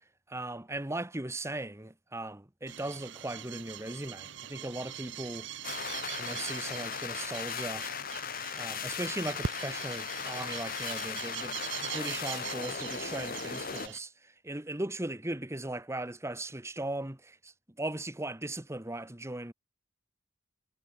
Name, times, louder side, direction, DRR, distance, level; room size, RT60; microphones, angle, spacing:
voice 1, 0.3-5.5 6.2-7.9 8.5-19.5, right 1 dB, 15° right, 1.2 m, -38 dB
sound 1, 2.7-14.0, right 9 dB, 65° right, 1.1 m, -42 dB
sound 2, 5.6-13.9, left 7 dB, 45° left, 1.5 m, -38 dB
head